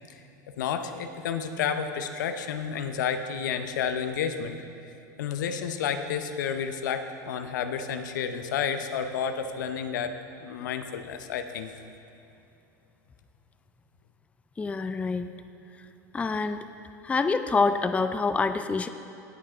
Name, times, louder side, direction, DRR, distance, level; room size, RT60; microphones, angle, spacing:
voice 1, 0.6-4.6 5.2-10.1 10.4-11.7, left 7 dB, 75° left, 8 dB, 0.7 m, -30 dB
voice 2, 14.6-15.3 16.1-16.6 17.0-18.9, left 4 dB, 15° left, 10 dB, 0.4 m, -26 dB
17.5 x 6.5 x 3.4 m, 2.8 s
hypercardioid pair, 90°, 10 cm